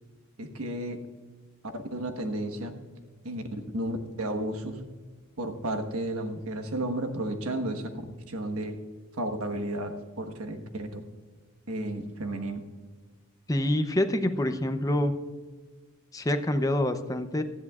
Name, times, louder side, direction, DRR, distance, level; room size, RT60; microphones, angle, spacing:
voice 1, 0.4-1.0 1.9-2.7 3.2-4.8 5.4-7.9 8.3-8.8 9.2-11.0 11.7-12.6, right 1 dB, 90° right, 7 dB, 1.3 m, -32 dB
voice 2, 13.5-15.1 16.1-17.4, left 1 dB, 15° left, 8 dB, 0.6 m, -26 dB
18.5 x 13.0 x 2.4 m, 1.4 s
head